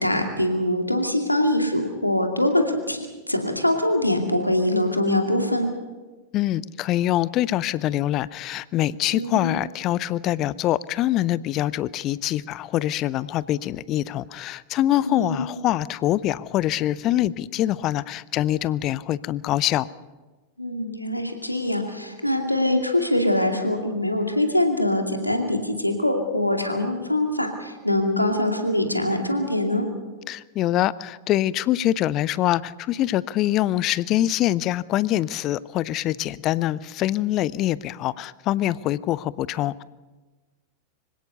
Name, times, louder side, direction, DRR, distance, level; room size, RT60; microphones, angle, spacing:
voice 1, 0.0-5.7 9.1-9.6 15.0-15.6 20.6-29.9, left 1 dB, 90° left, 4 dB, 2.4 m, -23 dB
voice 2, 6.3-19.9 30.3-39.8, left 13 dB, 35° left, 20 dB, 0.6 m, -24 dB
25.0 x 17.0 x 6.8 m, 1.3 s
figure-of-eight pair, 90°, 0 cm